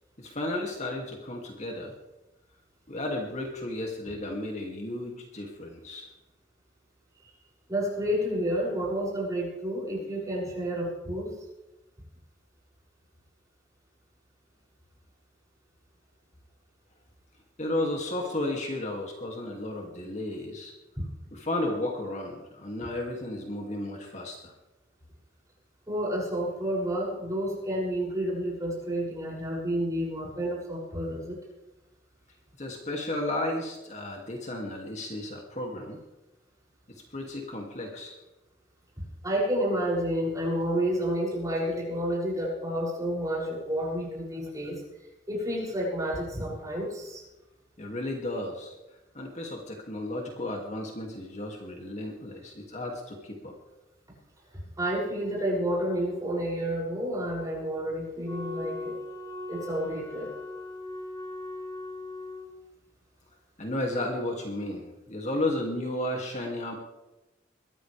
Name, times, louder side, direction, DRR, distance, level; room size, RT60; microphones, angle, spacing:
voice 1, 0.2-1.9 2.9-6.1 17.6-20.7 21.3-24.5 32.6-36.0 37.1-38.1 47.8-48.8 49.1-53.5 63.6-66.7, left 1 dB, 40° left, 0 dB, 2.5 m, -33 dB
voice 2, 7.7-11.4 25.9-31.4 39.2-44.8 45.3-47.2 54.8-59.0 59.5-60.3, equal, 20° right, -5 dB, 7.0 m, -30 dB
Wind instrument woodwind instrument, 58.2-62.6, left 2 dB, 20° left, 2.9 m, -39 dB
22.0 x 15.0 x 3.5 m, 1.0 s
head